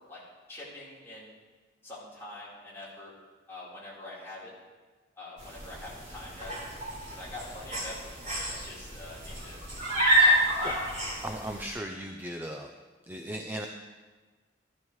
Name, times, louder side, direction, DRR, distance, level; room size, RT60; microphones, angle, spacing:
voice 1, 0.5-1.4 1.8-3.1 3.5-4.5 5.2-6.6 7.1-9.6 10.3-10.8, left 1 dB, 15° left, -8 dB, 4.1 m, -44 dB
sound 1, 5.4-11.7, equal, 45° right, 4.2 m, -29 dB
voice 2, 11.2-12.7 13.1-13.7, right 1 dB, 10° right, 3 dB, 0.6 m, -37 dB
14.5 x 12.0 x 3.2 m, 1.3 s
head